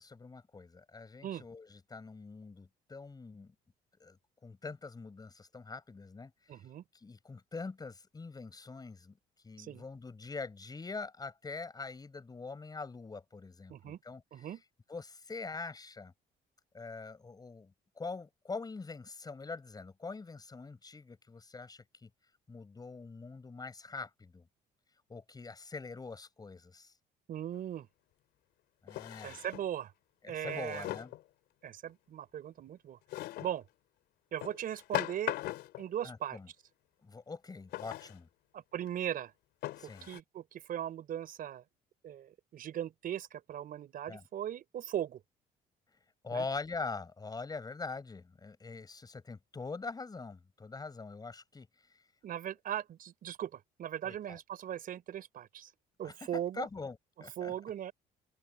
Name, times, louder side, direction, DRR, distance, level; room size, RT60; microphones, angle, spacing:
voice 1, 0.0-3.5 4.0-6.6 6.9-9.2 9.4-14.5 14.9-16.1 16.7-22.1 22.5-24.5 25.1-26.9 28.8-29.4 30.2-31.1 36.0-36.5 37.0-38.3 39.8-40.1 44.1-44.2 46.2-51.7 54.0-54.4 56.0-57.6, left 4 dB, 25° left, 7.3 m, -44 dB
voice 2, 6.5-6.8 9.6-9.8 13.7-14.0 14.3-14.6 27.3-27.9 29.2-29.9 30.3-30.9 31.6-33.0 33.4-33.6 34.3-35.3 35.8-36.4 38.5-39.3 40.0-41.6 42.0-45.2 46.3-46.4 52.2-55.7 56.0-56.7 57.4-57.9, right 10 dB, 60° right, 4.5 m, -39 dB
Drawer open or close, 27.5-27.6 28.9-29.7 30.4-31.2 33.1-33.6 34.4-35.9 37.7-38.2 38.9-39.0 39.6-40.2, left 15 dB, 80° left, 3.2 m, -39 dB
open air
cardioid pair, 110°, 17 cm